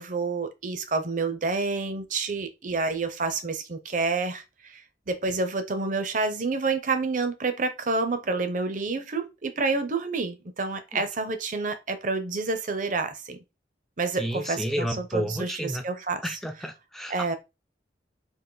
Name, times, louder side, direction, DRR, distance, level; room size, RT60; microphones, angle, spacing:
voice 1, 0.0-13.4 14.0-16.2 17.1-17.3, right 3 dB, 45° right, 0.6 m, -28 dB
voice 2, 14.1-15.8 16.2-17.3, equal, ahead, 0.4 m, -31 dB
3.8 x 2.5 x 3.8 m
head